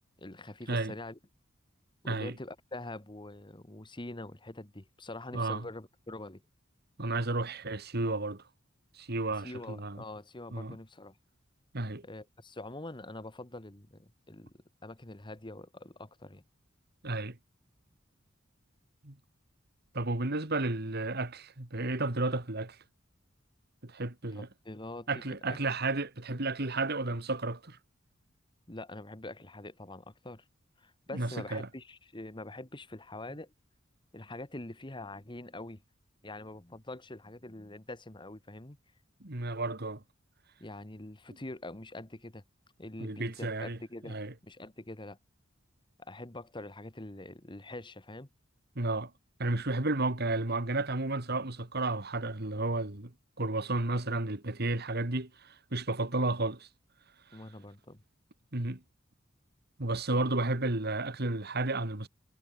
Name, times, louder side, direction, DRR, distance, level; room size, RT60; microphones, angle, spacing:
voice 1, 0.2-1.2 2.0-6.4 9.4-11.2 12.0-14.5 14.8-16.4 24.4-25.6 28.7-30.4 30.8-33.5 34.1-35.8 36.2-38.8 40.6-42.4 42.8-44.2 44.4-45.2 46.0-48.3 57.3-58.0, left 2 dB, 25° left, 1.6 m, -44 dB
voice 2, 5.3-5.7 7.0-8.4 9.0-10.0 10.5-10.8 11.7-12.0 17.0-17.4 19.0-19.2 19.9-22.8 23.8-24.5 25.1-27.8 31.1-31.7 39.2-40.0 43.0-43.8 44.1-44.3 48.8-49.1 49.4-53.1 53.4-56.7 58.5-58.8 59.8-62.1, right 2 dB, 55° right, 2.3 m, -32 dB
head